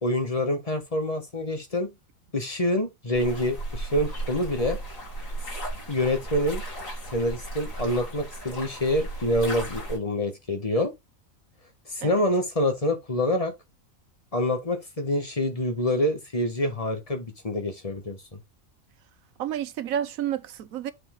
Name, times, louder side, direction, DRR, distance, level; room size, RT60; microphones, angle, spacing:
voice 1, 0.0-1.9 2.3-4.8 5.9-6.6 7.1-10.9 11.9-13.5 14.3-18.2, left 1 dB, 25° left, 1.4 m, -26 dB
sound 1, 3.1-10.0, right 1 dB, 75° left, 4.1 m, -35 dB
voice 2, 19.4-20.9, right 10 dB, 90° right, 1.2 m, -30 dB
8.1 x 4.2 x 3.7 m
omnidirectional pair, 1.4 m